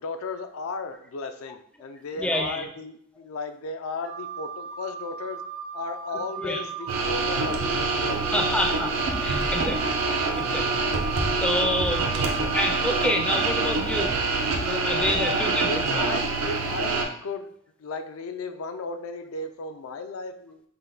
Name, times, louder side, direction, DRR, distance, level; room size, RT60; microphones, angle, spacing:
voice 1, 0.0-5.4 5.7-8.6 15.1-17.5 17.8-20.6, left 3 dB, 75° left, 8 dB, 0.4 m, -35 dB
voice 2, 2.2-2.7 6.4-6.6 8.3-8.9 9.2-10.0 10.4-10.8 11.4-12.3 12.5-14.1 14.6-16.1, left 1 dB, 5° left, 3 dB, 0.4 m, -28 dB
Wind instrument woodwind instrument, 4.0-13.7, right 9 dB, 60° right, 0.4 m, -36 dB
sound 1, 6.9-17.0, right 3 dB, 90° right, 0.7 m, -26 dB
5.5 x 2.1 x 3.8 m, 0.65 s
head